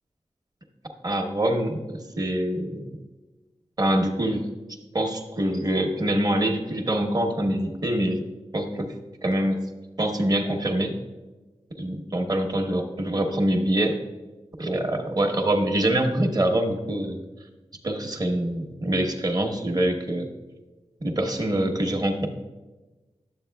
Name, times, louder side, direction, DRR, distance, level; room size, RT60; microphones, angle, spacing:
voice 1, 1.0-2.9 3.8-4.4 4.9-8.2 8.5-8.9 9.2-9.6 10.0-10.9 11.8-14.0 14.6-17.2 17.8-20.3 21.0-22.3, right 1 dB, 35° right, 4 dB, 0.9 m, -25 dB
10.5 x 7.4 x 2.3 m, 1.2 s
wide cardioid pair, 75°, 11 cm